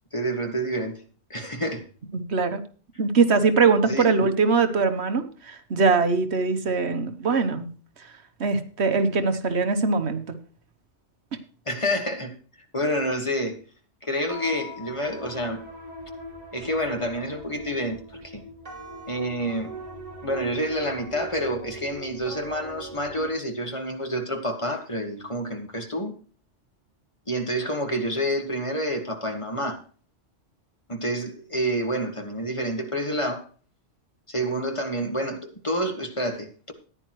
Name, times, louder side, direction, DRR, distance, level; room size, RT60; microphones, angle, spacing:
voice 1, 0.1-1.0 1.3-1.9 3.8-4.1 11.7-12.3 12.7-13.6 14.0-15.6 16.5-18.4 19.1-19.7 20.2-26.1 27.3-29.8 30.9-33.4 34.3-36.7, equal, 25° left, 1.6 m, -28 dB
voice 2, 2.1-2.6 3.0-7.7 8.0-8.1 8.4-10.4, right 4 dB, 65° right, 1.3 m, -22 dB
sound 1, 14.3-23.3, right 1 dB, 35° right, 3.7 m, -40 dB
15.0 x 10.0 x 3.0 m
omnidirectional pair, 1.2 m